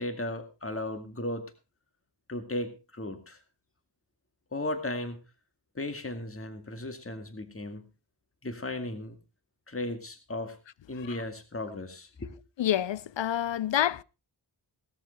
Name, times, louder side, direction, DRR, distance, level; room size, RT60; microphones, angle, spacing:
voice 1, 0.0-1.5 2.3-3.4 4.5-5.2 5.8-7.9 8.4-9.2 9.7-10.6 10.9-12.3, left 1 dB, 30° left, 2.1 m, -35 dB
voice 2, 12.6-14.0, left 11 dB, 80° left, 0.6 m, -28 dB
18.0 x 13.0 x 3.2 m
wide cardioid pair, 95°, 44 cm